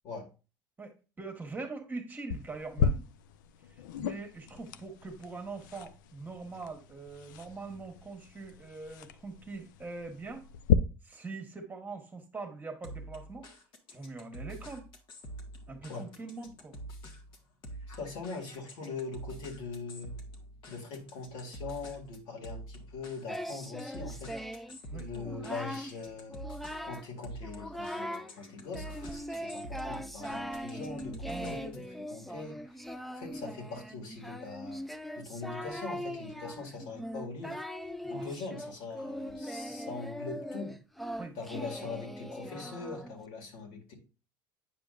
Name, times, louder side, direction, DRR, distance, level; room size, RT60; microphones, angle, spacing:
voice 1, 0.8-3.1 4.0-10.5 11.0-13.5 13.9-14.9 15.7-16.8 24.9-25.1 28.6-28.7 29.3-29.4 31.3-31.6 38.0-38.4 39.7-39.8 41.2-41.3, right 3 dB, 20° right, 4 dB, 1.4 m, -43 dB
sound 1, 2.3-10.7, left 8 dB, 90° left, 0.4 m, -35 dB
sound 2, 12.8-31.9, right 1 dB, 55° left, 1.5 m, -47 dB
voice 2, 17.9-20.1 20.7-24.3 24.9-26.4 26.8-32.6 33.1-34.8 35.2-37.6 38.1-40.8 41.3-43.9, left 4 dB, 70° left, 1 dB, 2.2 m, -42 dB
Singing, 23.3-24.8 25.1-25.9 26.3-27.1 27.4-28.3 28.7-43.2, equal, ahead, 0.5 m, -40 dB
8.7 x 5.1 x 2.5 m, 0.33 s
supercardioid pair, 100°, 10 cm